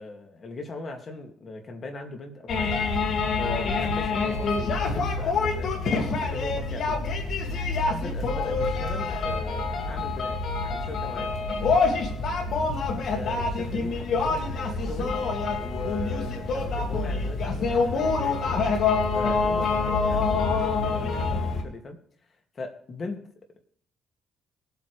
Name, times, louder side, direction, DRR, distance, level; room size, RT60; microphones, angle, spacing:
voice 1, 0.0-2.8 3.4-7.1 7.8-11.4 13.1-15.1 15.6-18.6 19.1-22.0 22.5-23.2, left 3 dB, 45° left, 4 dB, 2.5 m, -39 dB
sound 1, 2.5-21.6, left 4 dB, 65° left, 2.4 m, -26 dB
22.0 x 8.5 x 3.4 m, 0.64 s
cardioid pair, 90°, 0 cm